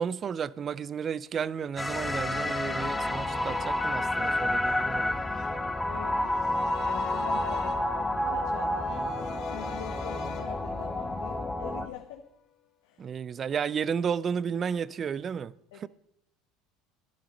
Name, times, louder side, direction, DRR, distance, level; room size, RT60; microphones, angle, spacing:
voice 1, 0.0-5.2 13.0-15.9, right 7 dB, 40° right, 0.5 m, -32 dB
sound 1, 1.8-11.9, left 1 dB, 10° left, 1.2 m, -30 dB
sound 2, 2.0-12.2 12.5-12.6, left 9 dB, 60° left, 1.9 m, -45 dB
voice 2, 5.8-12.2 12.8-13.1 15.7-15.9, left 10 dB, 80° left, 1.3 m, -44 dB
13.0 x 11.5 x 5.2 m
supercardioid pair, 90°, 0 cm